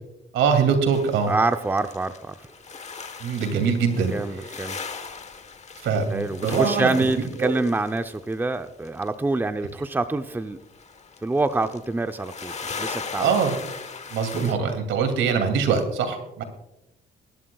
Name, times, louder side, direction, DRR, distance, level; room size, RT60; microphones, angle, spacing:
voice 1, 0.3-1.3 3.2-4.1 5.8-6.9 7.4-7.5 13.2-13.5 14.1-16.4, right 6 dB, 80° right, 6 dB, 2.7 m, -23 dB
sound 1, 0.9-9.1 10.1-10.2 10.4-14.5, left 5 dB, 35° left, 1.2 m, -39 dB
voice 2, 1.3-2.3 4.1-4.8 6.1-10.6 11.2-13.3 14.6-14.7, right 2 dB, 10° right, 9 dB, 0.6 m, -26 dB
22.0 x 11.5 x 2.4 m, 0.86 s
cardioid pair, 90°, 20 cm